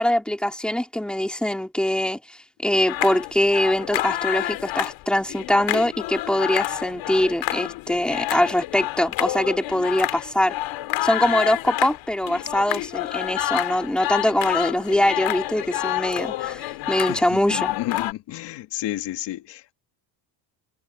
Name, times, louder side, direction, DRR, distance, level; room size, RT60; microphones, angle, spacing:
voice 1, 0.0-2.4 2.6-10.6 11.0-17.7, left 1 dB, ahead, 3.0 m, -23 dB
sound 1, 2.9-18.1, left 16 dB, 90° left, 2.8 m, -28 dB
voice 2, 17.1-19.7, left 15 dB, 70° left, 1.6 m, -31 dB
cardioid pair, 150°, 44 cm